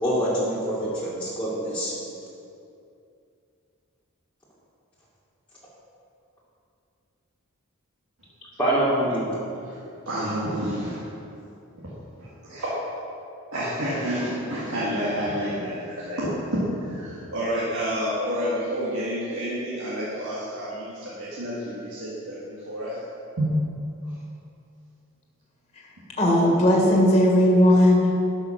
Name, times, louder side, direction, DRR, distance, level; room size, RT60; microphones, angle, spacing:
voice 1, 0.0-2.0 8.6-9.4, right 1 dB, 5° left, -10 dB, 2.1 m, -25 dB
voice 2, 10.1-11.1 12.2-12.7 13.5-23.0 23.4-23.5 24.0-24.2, equal, 85° right, -8 dB, 2.1 m, -29 dB
voice 3, 26.2-28.2, left 1 dB, 30° left, -2 dB, 1.7 m, -17 dB
12.0 x 5.7 x 5.8 m, 2.6 s
head